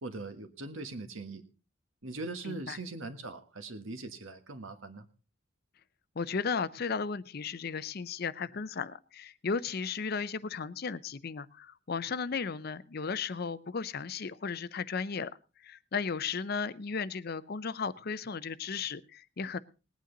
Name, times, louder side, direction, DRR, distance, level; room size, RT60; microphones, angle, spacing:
voice 1, 0.0-1.4 2.0-5.1, right 3 dB, 70° right, 8 dB, 1.5 m, -41 dB
voice 2, 2.4-2.8 6.2-15.3 15.6-19.6, left 5 dB, 45° left, 16 dB, 0.5 m, -35 dB
19.5 x 9.3 x 3.9 m, 0.33 s
head